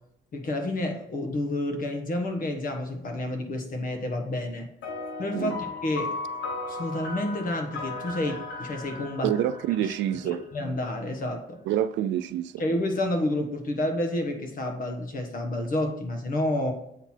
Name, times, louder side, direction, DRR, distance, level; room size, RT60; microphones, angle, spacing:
voice 1, 0.3-4.7 5.2-6.1 6.7-9.3 9.8-10.0 10.2-11.6 12.6-16.7, left 1 dB, 50° left, 1.3 m, -29 dB
sound 1, 4.8-10.6, left 3 dB, 90° left, 1.4 m, -36 dB
voice 2, 9.2-10.4 11.7-12.5, right 11 dB, 90° right, 0.4 m, -27 dB
8.0 x 4.0 x 4.4 m
cardioid pair, 110°, 18 cm